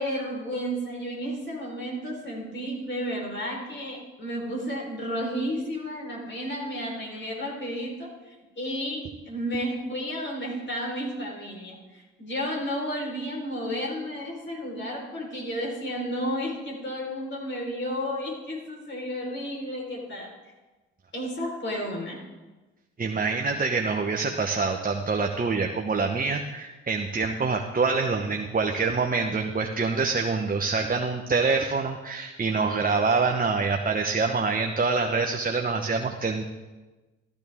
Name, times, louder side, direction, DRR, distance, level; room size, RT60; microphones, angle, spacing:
voice 1, 0.0-20.3 21.1-22.2, equal, 40° left, -2 dB, 4.6 m, -32 dB
voice 2, 23.0-36.4, right 4 dB, 30° right, 4 dB, 1.1 m, -26 dB
14.0 x 12.0 x 3.7 m, 1.2 s
hypercardioid pair, 55°, 30 cm